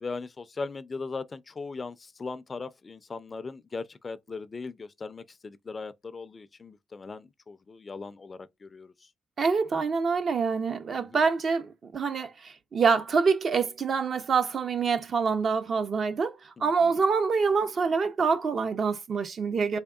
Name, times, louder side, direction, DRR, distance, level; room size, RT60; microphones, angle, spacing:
voice 1, 0.0-9.1 11.0-11.2 16.6-16.9, left 4 dB, 30° left, 0.4 m, -39 dB
voice 2, 9.4-19.8, right 5 dB, 50° right, 0.5 m, -26 dB
3.5 x 3.5 x 2.3 m
cardioid pair, 90°, 0 cm